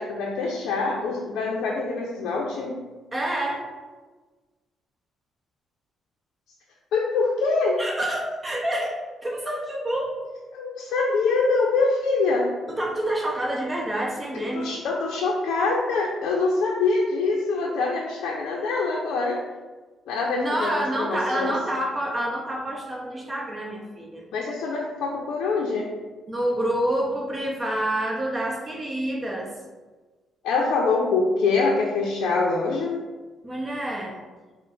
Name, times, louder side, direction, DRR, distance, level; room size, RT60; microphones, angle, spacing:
voice 1, 0.0-2.8 6.9-7.7 10.5-12.5 14.3-19.4 20.1-21.5 24.3-25.9 30.4-33.0, left 3 dB, 85° left, -2 dB, 0.4 m, -24 dB
voice 2, 3.1-3.6 7.8-10.2 12.7-14.7 20.4-24.3 26.3-29.5 33.4-34.2, right 1 dB, 25° right, -2 dB, 0.7 m, -28 dB
4.2 x 2.0 x 3.8 m, 1.3 s
cardioid pair, 90°, 0 cm